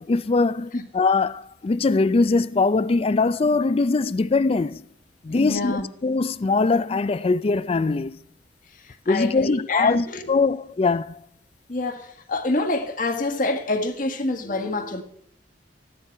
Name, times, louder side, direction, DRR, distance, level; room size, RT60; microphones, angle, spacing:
voice 1, 0.0-4.8 5.2-8.2 9.1-11.2, left 3 dB, 35° left, 0.4 m, -22 dB
voice 2, 5.3-5.9 8.7-10.3 11.7-15.0, left 2 dB, 50° left, 1.6 m, -27 dB
14.5 x 10.5 x 4.6 m
head